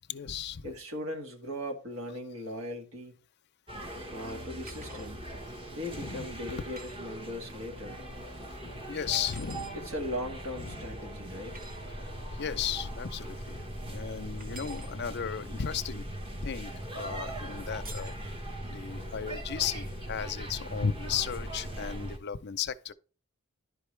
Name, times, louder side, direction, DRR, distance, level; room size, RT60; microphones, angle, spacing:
voice 1, 0.1-0.7 5.9-6.3 8.6-9.8 10.6-10.8 12.3-16.1 16.4-18.1 18.7-22.9, left 7 dB, 50° left, 0.5 m, -35 dB
voice 2, 0.6-3.2 4.1-5.3 5.7-8.1 9.7-11.7, left 1 dB, 65° right, 1.8 m, -39 dB
sound 1, 3.7-22.2, right 1 dB, 25° right, 1.2 m, -40 dB
sound 2, 4.6-5.1 6.7-7.0 9.1-9.8 11.5-11.8 14.4-14.9 17.8-18.2, right 2 dB, 40° right, 1.2 m, -47 dB
11.0 x 4.6 x 3.3 m
head